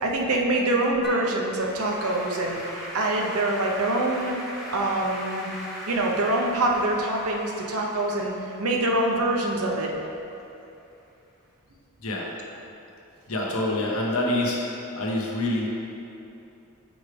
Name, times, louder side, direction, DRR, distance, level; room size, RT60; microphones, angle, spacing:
voice 1, 0.0-4.3 4.7-5.5 5.9-8.3 8.6-9.9, right 2 dB, 85° right, 0 dB, 0.7 m, -25 dB
Applause / Keyboard (musical), 1.0-10.4, equal, ahead, 1.0 m, -39 dB
voice 2, 13.3-14.6 15.0-15.7, left 1 dB, 70° left, -2 dB, 0.9 m, -26 dB
6.3 x 3.2 x 4.8 m, 2.8 s
head